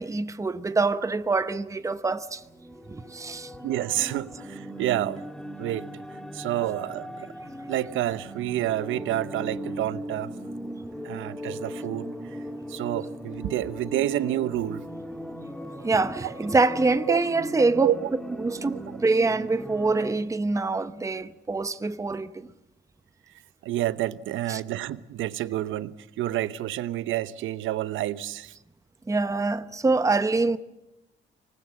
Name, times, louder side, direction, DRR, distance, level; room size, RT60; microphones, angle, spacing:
voice 1, 0.0-2.4 2.9-3.5 15.8-17.9 18.4-22.5 24.5-24.6 29.1-30.6, right 3 dB, 15° right, 0.9 m, -25 dB
sound 1, 2.4-20.1, equal, 5° left, 1.9 m, -38 dB
voice 2, 3.6-5.2 5.6-6.0 6.3-7.3 7.7-10.3 11.0-12.4 12.7-14.9 16.2-16.3 17.1-17.2 17.8-18.1 23.6-28.5, right 13 dB, 85° right, 0.9 m, -29 dB
25.5 x 19.5 x 7.4 m
cardioid pair, 90°, 20 cm